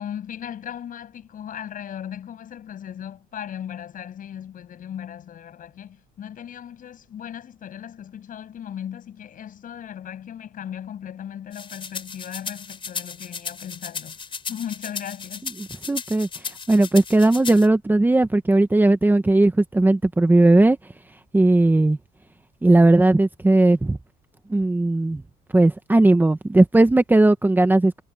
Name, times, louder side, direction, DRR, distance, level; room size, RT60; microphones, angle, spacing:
voice 1, 0.0-14.2 14.5-15.5, left 9 dB, 55° left, 7.8 m, -37 dB
sound 1, 11.5-17.7, left 5 dB, 30° left, 4.1 m, -35 dB
voice 2, 15.9-16.3 16.7-20.8 21.3-22.0 22.6-24.0 24.5-25.2 25.5-28.0, right 2 dB, 10° right, 1.2 m, -17 dB
cardioid pair, 110°, 17 cm